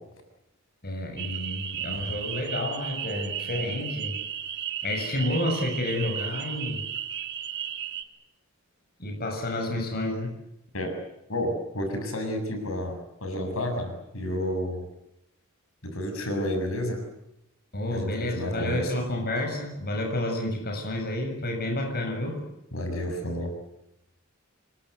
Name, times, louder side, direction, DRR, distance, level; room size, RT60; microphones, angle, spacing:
voice 1, 0.8-4.2 4.8-6.8 9.0-10.3 17.7-22.4, left 1 dB, 50° left, 3 dB, 7.2 m, -30 dB
sound 1, 1.2-8.0, right 9 dB, 55° right, 2.5 m, -34 dB
voice 2, 11.3-14.9 15.8-17.0 17.9-18.9 22.7-23.5, left 1 dB, 75° left, 5 dB, 7.4 m, -30 dB
28.5 x 24.0 x 8.2 m, 0.85 s
head